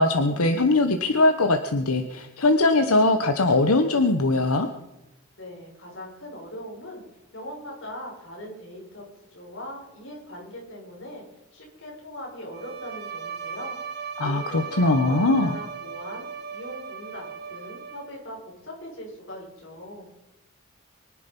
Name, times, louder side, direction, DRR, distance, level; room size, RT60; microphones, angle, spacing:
voice 1, 0.0-4.7 14.2-15.5, left 2 dB, 85° left, 7 dB, 1.2 m, -21 dB
voice 2, 5.4-7.0 7.3-9.0 9.3-11.2 11.5-20.1, equal, 55° left, -2 dB, 6.3 m, -40 dB
Bowed string instrument, 12.5-18.3, right 6 dB, 45° right, 1.4 m, -37 dB
24.0 x 10.5 x 5.5 m, 0.94 s
head